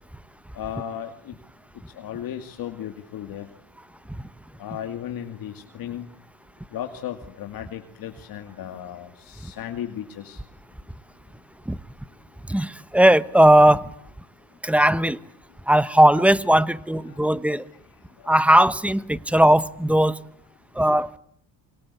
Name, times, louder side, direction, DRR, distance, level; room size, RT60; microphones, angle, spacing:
voice 1, 0.5-1.4 1.9-3.5 4.6-6.1 6.7-10.4 16.5-16.6 17.1-17.3 18.2-18.3, left 10 dB, 65° left, 5 dB, 2.4 m, -35 dB
voice 2, 12.5-13.9 14.6-15.2 15.7-17.7 18.3-20.2 20.7-21.2, right 1 dB, 5° right, 16 dB, 1.1 m, -18 dB
26.0 x 24.0 x 8.3 m, 0.66 s
cardioid pair, 100°, 38 cm